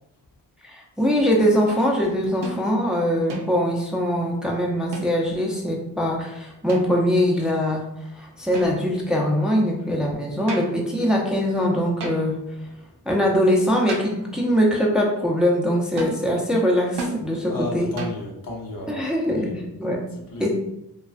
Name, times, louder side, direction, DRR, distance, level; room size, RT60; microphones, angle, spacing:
voice 1, 0.6-7.8 8.1-12.3 13.1-17.9 18.9-20.0 20.4-20.5, equal, ahead, -1 dB, 0.5 m, -22 dB
sound 1, 1.7-1.9 2.4-2.6 3.3-3.8 4.9-5.4 6.7-7.2 8.5-9.1 10.5-10.8 12.0-12.4 13.9-14.3 16.0-16.2 17.0-17.3 18.0-18.3, right 2 dB, 80° right, 0.6 m, -33 dB
voice 2, 17.5-19.6 20.1-20.5, left 2 dB, 55° left, -1 dB, 0.8 m, -33 dB
2.3 x 2.3 x 2.4 m, 0.80 s
cardioid pair, 50°, 41 cm